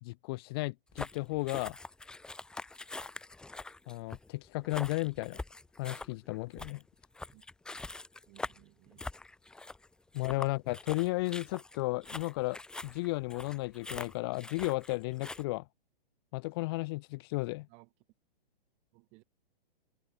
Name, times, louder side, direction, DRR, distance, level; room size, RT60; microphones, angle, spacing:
voice 1, 0.0-1.7 3.9-5.4 5.8-6.8 10.1-15.6 16.3-17.7, left 23 dB, 25° left, 1.4 m, -34 dB
sound 1, 0.9-15.4, left 2 dB, 5° left, 1.5 m, -44 dB
voice 2, 8.3-9.1 17.7-17.9 18.9-19.2, right 31 dB, 25° right, 4.7 m, -59 dB
hypercardioid pair, 165°, 29 cm